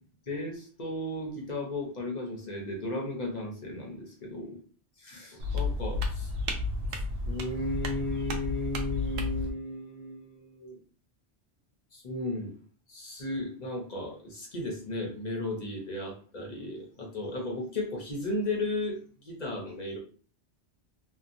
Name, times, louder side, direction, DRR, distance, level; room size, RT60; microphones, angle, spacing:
voice 1, 0.3-4.6 5.0-6.3 6.9-10.8 11.9-12.5 12.9-20.0, left 2 dB, 45° left, -1 dB, 0.7 m, -35 dB
sound 1, 5.4-9.5, left 2 dB, 85° right, 0.9 m, -32 dB
2.8 x 2.2 x 2.5 m, 0.42 s
omnidirectional pair, 1.2 m